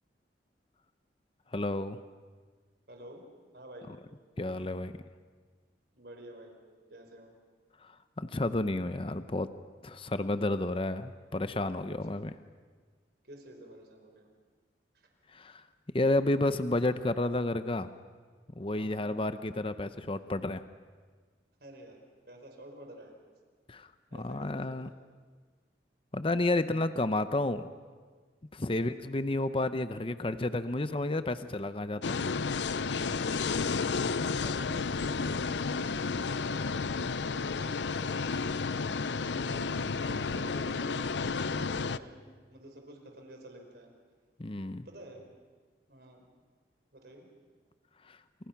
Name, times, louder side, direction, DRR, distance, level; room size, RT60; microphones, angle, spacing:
voice 1, 1.5-2.0 4.4-4.9 7.8-7.9 8.2-9.5 9.8-12.3 15.3-15.6 15.9-17.9 18.6-20.6 23.7-23.9 24.2-24.9 26.1-27.7 28.5-32.2 44.4-44.8 48.1-48.2, left 2 dB, 30° left, 11 dB, 0.8 m, -31 dB
voice 2, 2.9-3.2 3.5-3.9 5.9-6.6 6.9-7.3 11.9-12.2 13.2-14.3 14.9-15.1 18.7-19.1 21.6-22.0 22.3-23.2 24.1-25.0 28.7-29.0 30.8-31.1 31.9-32.0 33.5-38.4 39.1-39.7 39.9-43.9 44.8-45.2 45.9-46.4 46.9-47.3, right 1 dB, 65° right, 3 dB, 4.8 m, -50 dB
sound 1, 32.0-42.0, left 4 dB, 90° left, 0.7 m, -32 dB
29.5 x 28.5 x 6.0 m, 1.5 s
head